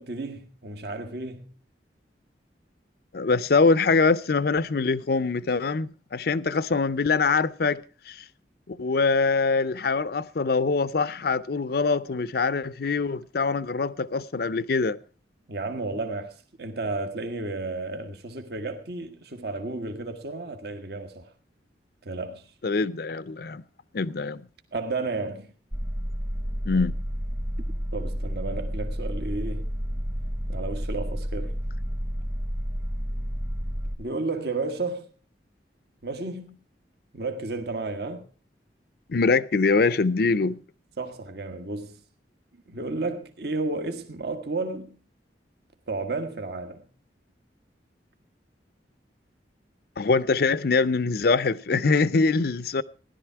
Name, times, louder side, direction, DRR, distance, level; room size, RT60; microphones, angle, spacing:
voice 1, 0.0-1.4 15.5-21.3 22.0-22.4 24.7-25.5 27.9-29.7 30.5-31.5 34.0-35.1 36.0-36.6 37.1-38.2 41.0-42.0 42.7-45.0 45.9-46.8, right 3 dB, 65° right, 1.4 m, -32 dB
voice 2, 3.1-7.8 8.1-8.2 8.7-15.0 22.6-23.6 23.9-24.4 26.7-26.9 39.1-40.6 50.0-52.8, left 4 dB, 60° left, 0.6 m, -23 dB
sound 1, 25.7-34.0, equal, 15° right, 0.9 m, -30 dB
16.0 x 11.5 x 4.6 m
head